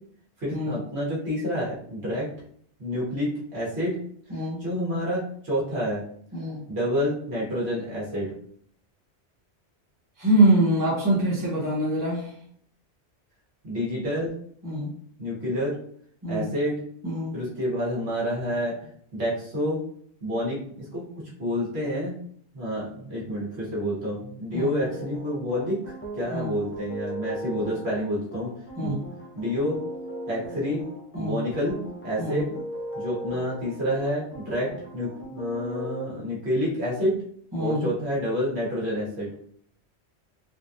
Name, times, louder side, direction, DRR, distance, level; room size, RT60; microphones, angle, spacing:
voice 1, 0.4-2.3 2.8-4.0 4.3-6.0 6.7-8.3 13.6-14.3 15.2-15.8 16.3-16.8 17.3-19.8 20.2-21.0 21.4-22.2 22.5-25.8 26.1-28.5 28.8-28.9 29.3-29.8 30.3-30.8 31.2-31.8 32.0-32.5 32.9-37.1 37.6-39.3, equal, 75° right, -6 dB, 1.6 m, -28 dB
voice 2, 4.3-4.6 6.3-6.6 10.2-12.3 14.6-14.9 16.2-16.5 17.0-17.3 24.5-24.7 26.3-26.5 28.8-29.0 31.1-31.4 32.2-32.4 37.5-37.9, right 1 dB, 20° right, -4 dB, 1.1 m, -24 dB
sound 1, 24.8-36.1, right 1 dB, 20° left, 0.4 m, -38 dB
3.8 x 2.3 x 2.7 m, 0.63 s
omnidirectional pair, 1.1 m